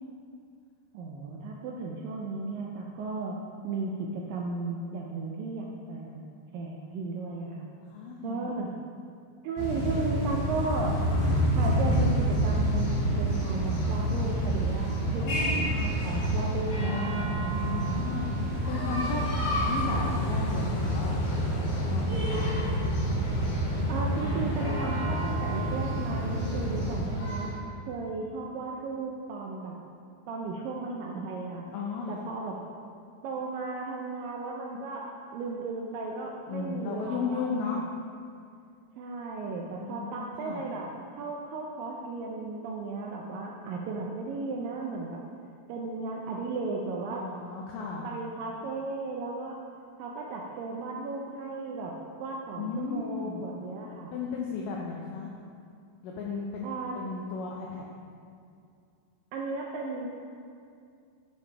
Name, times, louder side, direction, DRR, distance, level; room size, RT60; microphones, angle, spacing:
voice 1, 0.9-3.4 3.6-6.3 6.5-7.7 8.2-8.7 9.4-11.0 11.6-18.0 23.9-27.5 27.9-29.8 30.3-31.7 32.1-32.6 33.2-35.1 35.3-37.8 39.0-40.9 41.1-45.2 45.7-47.2 48.0-49.6 50.0-51.9 52.2-54.1 56.6-56.9 59.3-60.1, right 3 dB, 80° right, -1 dB, 2.0 m, -35 dB
voice 2, 7.8-8.8 15.2-15.8 17.6-18.4 18.7-19.3 19.7-22.6 31.7-32.5 36.5-37.8 39.8-40.6 47.1-48.1 52.5-53.5 54.1-55.3 56.0-57.8, left 5 dB, 85° left, -2 dB, 1.9 m, -35 dB
sound 1, 9.6-27.6, equal, 45° left, 2.5 m, -28 dB
12.0 x 5.1 x 3.3 m, 2.4 s
omnidirectional pair, 4.6 m